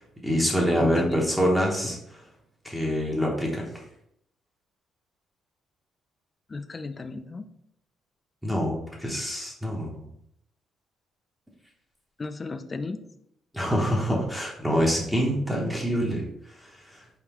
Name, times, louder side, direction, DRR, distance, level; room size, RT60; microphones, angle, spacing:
voice 1, 0.0-2.2 2.6-3.7 8.4-10.0 13.5-16.2 16.6-17.0, equal, ahead, -2 dB, 0.8 m, -26 dB
voice 2, 0.8-1.3 6.5-7.5 12.2-13.0, left 3 dB, 25° left, 10 dB, 0.3 m, -33 dB
4.5 x 3.6 x 2.9 m, 0.76 s
cardioid pair, 130°, 0 cm